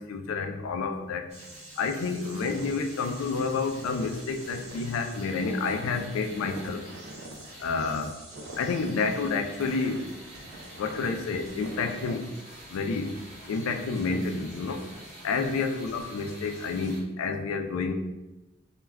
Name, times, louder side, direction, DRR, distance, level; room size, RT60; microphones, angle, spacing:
voice 1, 0.1-1.2 1.8-6.8 7.6-8.1 8.6-10.0 10.8-12.2 12.7-13.1 13.5-14.8 15.2-17.9, left 4 dB, 85° left, 5 dB, 0.3 m, -29 dB
sound 1, 1.3-17.0, right 1 dB, 35° right, 0.8 m, -47 dB
Walk footsteps, 2.2-12.2, right 1 dB, 60° right, 0.4 m, -46 dB
2.2 x 2.2 x 3.3 m, 1.0 s
head